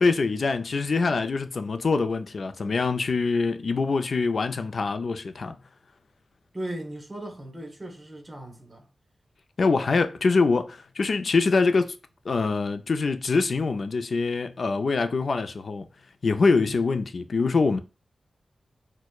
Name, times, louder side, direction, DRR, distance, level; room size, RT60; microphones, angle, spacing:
voice 1, 0.0-5.6 9.6-12.0 12.2-15.9 16.2-17.8, left 4 dB, 60° left, 0.3 m, -24 dB
voice 2, 6.5-8.9 16.4-16.8, right 1 dB, 25° right, 1.0 m, -37 dB
6.1 x 2.1 x 2.3 m
cardioid pair, 70°, 0 cm